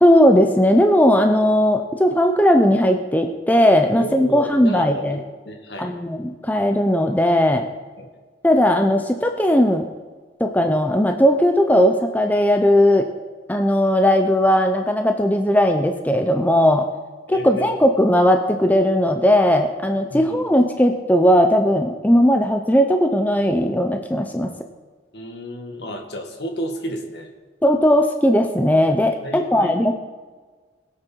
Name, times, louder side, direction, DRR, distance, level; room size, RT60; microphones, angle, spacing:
voice 1, 0.0-5.2 5.8-7.7 8.4-9.9 10.4-13.1 13.5-16.9 17.3-24.5 27.6-29.9, equal, 10° left, 4 dB, 0.6 m, -17 dB
voice 2, 4.0-5.9 8.0-8.1 17.3-17.7 20.1-20.4 25.1-27.3 29.2-29.9, equal, 70° left, 3 dB, 2.1 m, -32 dB
21.0 x 7.9 x 4.7 m, 1.4 s
head